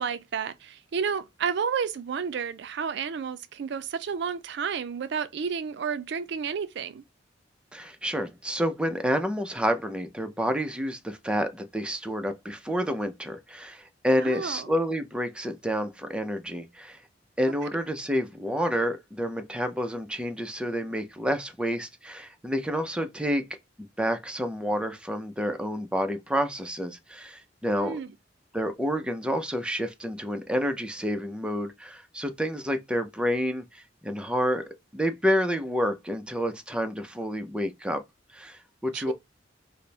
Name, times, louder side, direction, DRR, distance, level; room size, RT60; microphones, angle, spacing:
voice 1, 0.0-7.0 14.2-14.7 27.7-28.1 38.9-39.1, right 6 dB, 65° right, 0.4 m, -31 dB
voice 2, 7.7-17.0 17.4-23.4 23.8-28.0 28.5-34.6 34.9-38.0 38.3-39.1, equal, 5° right, 0.5 m, -29 dB
4.2 x 2.1 x 3.2 m
head